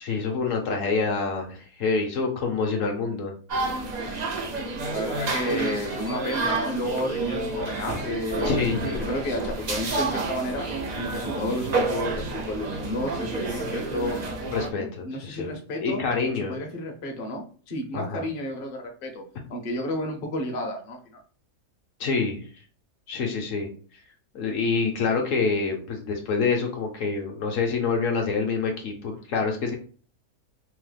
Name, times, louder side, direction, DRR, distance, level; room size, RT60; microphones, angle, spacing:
voice 1, 0.0-3.3 8.4-9.1 14.5-15.5 15.8-16.6 17.9-18.2 22.0-22.5 23.1-23.7 24.3-29.8, left 4 dB, 70° left, 2 dB, 0.9 m, -26 dB
sound 1, 3.5-14.7, right 3 dB, 90° right, 0.3 m, -29 dB
voice 2, 4.9-10.7 11.0-14.2 14.8-16.0 16.3-19.2 19.5-21.0, left 1 dB, 50° left, 2 dB, 0.7 m, -31 dB
3.0 x 2.0 x 3.2 m, 0.42 s
omnidirectional pair, 1.5 m